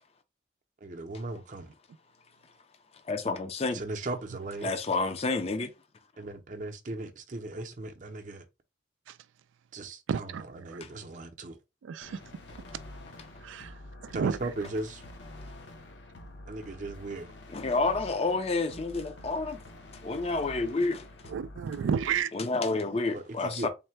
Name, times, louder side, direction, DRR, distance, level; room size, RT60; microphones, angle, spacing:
voice 1, 0.8-1.7 3.7-4.7 6.2-8.5 9.7-11.6 14.1-15.0 16.5-17.3 23.1-23.7, right 2 dB, 40° right, 0.6 m, -37 dB
voice 2, 3.1-3.8 4.6-5.7 17.5-19.6 20.0-21.1 22.3-23.7, left 3 dB, 30° left, 0.4 m, -29 dB
voice 3, 10.1-10.8 11.8-12.2 13.4-13.7 14.0-14.4 21.3-22.3, right 7 dB, 90° right, 0.3 m, -31 dB
sound 1, 12.0-22.2, left 1 dB, 70° left, 0.7 m, -47 dB
3.6 x 2.1 x 4.3 m
head